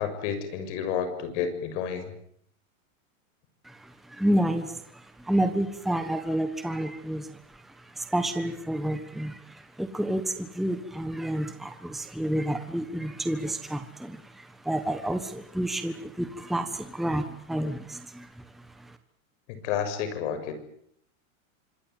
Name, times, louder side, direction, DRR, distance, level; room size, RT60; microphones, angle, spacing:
voice 1, 0.0-2.1 19.5-20.5, left 8 dB, 55° left, 10 dB, 7.0 m, -30 dB
voice 2, 3.6-19.0, right 1 dB, ahead, 8 dB, 1.3 m, -30 dB
26.0 x 21.5 x 9.4 m, 0.69 s
supercardioid pair, 155°, 41 cm